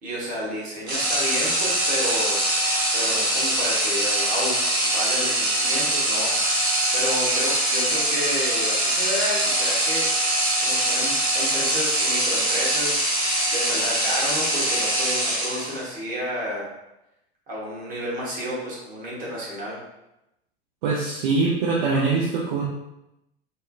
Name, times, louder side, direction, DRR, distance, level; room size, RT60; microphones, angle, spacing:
voice 1, 0.0-2.4 2.9-6.5 6.9-10.1 10.6-13.0 13.5-16.6 17.5-19.8, equal, 25° right, -6 dB, 1.3 m, -31 dB
sound 1, 0.9-15.9, right 1 dB, 80° right, 0.8 m, -23 dB
voice 2, 20.8-22.6, right 4 dB, 50° right, -5 dB, 0.7 m, -23 dB
3.6 x 2.1 x 2.6 m, 0.89 s
figure-of-eight pair, 80°, 32 cm